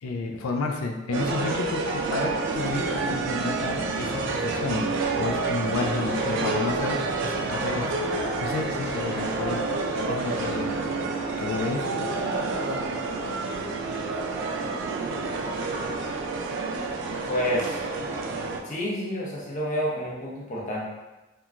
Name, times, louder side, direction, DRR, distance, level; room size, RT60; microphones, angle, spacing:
voice 1, 0.0-4.9 5.2-7.9 8.4-9.6 10.1-11.0 11.4-12.1, left 4 dB, 90° left, 3 dB, 0.4 m, -31 dB
sound 1, 1.1-18.6, right 3 dB, 60° right, 0.3 m, -28 dB
voice 2, 17.3-17.8 18.6-20.9, equal, 35° left, -5 dB, 0.7 m, -29 dB
2.9 x 2.2 x 2.4 m, 1.1 s
head